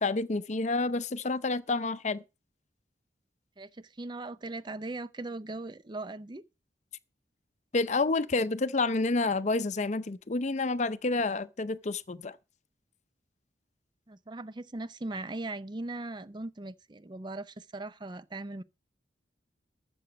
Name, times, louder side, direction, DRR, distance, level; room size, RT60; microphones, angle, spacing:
voice 1, 0.0-2.2 7.7-12.4, left 3 dB, 40° left, 0.6 m, -29 dB
voice 2, 3.6-6.4 14.1-18.6, right 2 dB, 25° right, 0.5 m, -39 dB
13.5 x 7.8 x 5.2 m
head